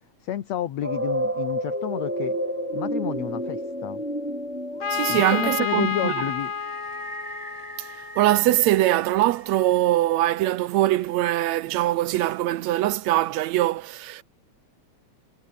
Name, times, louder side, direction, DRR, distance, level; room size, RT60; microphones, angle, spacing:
voice 1, 0.2-2.4 2.7-4.0 5.1-6.5, left 11 dB, 70° left, 2.6 m, -30 dB
sound 1, 0.8-9.8, right 1 dB, 5° right, 2.1 m, -33 dB
sound 2, 0.9-10.3 10.5-11.4 11.7-12.7 13.0-13.1, left 2 dB, 15° left, 1.7 m, -38 dB
Trumpet, 4.8-8.5, left 6 dB, 40° left, 1.3 m, -30 dB
voice 2, 4.9-6.2 7.8-7.9 8.2-14.2, right 15 dB, 75° right, 1.9 m, -22 dB
omnidirectional pair, 3.4 m